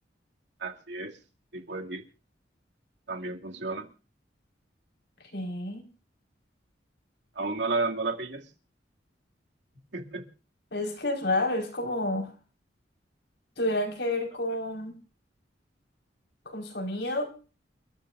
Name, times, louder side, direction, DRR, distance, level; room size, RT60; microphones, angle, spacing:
voice 1, 0.6-1.2 1.5-2.0 3.1-3.9 7.4-8.5 9.9-10.2, right 3 dB, 85° right, 2 dB, 2.5 m, -32 dB
voice 2, 5.3-5.9 10.7-12.3 13.6-15.0 16.4-17.3, left 1 dB, 75° left, 3 dB, 4.9 m, -30 dB
29.5 x 13.5 x 2.6 m, 0.36 s
head